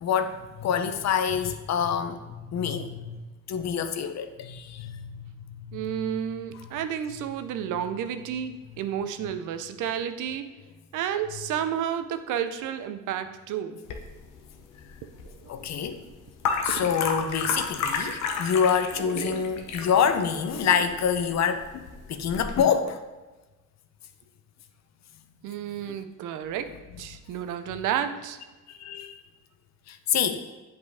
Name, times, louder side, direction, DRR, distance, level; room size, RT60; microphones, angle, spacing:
voice 1, 0.0-2.2 2.5-3.2 3.5-6.0 15.5-16.0 16.6-23.0 28.8-29.2 29.9-30.4, left 7 dB, 60° left, 0.7 m, -26 dB
voice 2, 5.7-10.5 10.9-13.8 15.2-15.8 16.7-16.9 17.5-17.7 18.2-18.3 19.0-19.9 20.5-20.8 25.4-26.7 27.0-28.4, right 9 dB, 85° right, 0.6 m, -32 dB
sound 1, 13.9-22.6, left 5 dB, 90° left, 0.9 m, -33 dB
8.0 x 5.2 x 3.4 m
cardioid pair, 90°, 30 cm